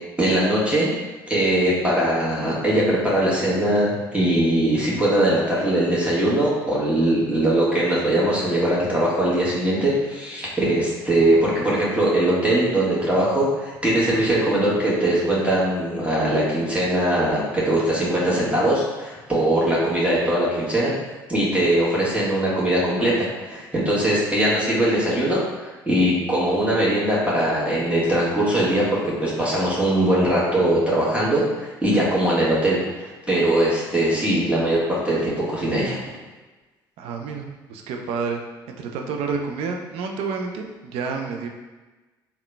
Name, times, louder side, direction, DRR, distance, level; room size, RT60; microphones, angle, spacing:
voice 1, 0.2-0.9 1.3-20.9 21.3-36.0, right 1 dB, 10° right, -7 dB, 1.5 m, -21 dB
voice 2, 37.0-38.4 38.7-41.5, right 5 dB, 60° right, 3 dB, 0.5 m, -29 dB
3.6 x 2.3 x 3.3 m, 1.2 s
figure-of-eight pair, 55°, 11 cm